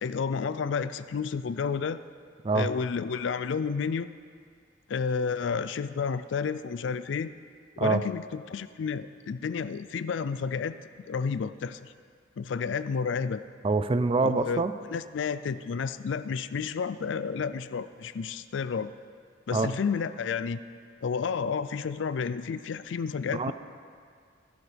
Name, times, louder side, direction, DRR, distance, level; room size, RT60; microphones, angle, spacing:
voice 1, 0.0-2.0 2.5-4.1 4.9-7.3 7.8-10.8 11.1-11.9 12.4-13.4 14.2-14.6 14.9-18.9 19.5-20.6 21.0-23.5, left 5 dB, 70° left, 14 dB, 0.4 m, -31 dB
voice 2, 13.6-14.7 19.5-19.7 23.3-23.5, right 3 dB, 30° right, 11 dB, 0.4 m, -25 dB
15.0 x 12.0 x 3.4 m, 2.1 s
head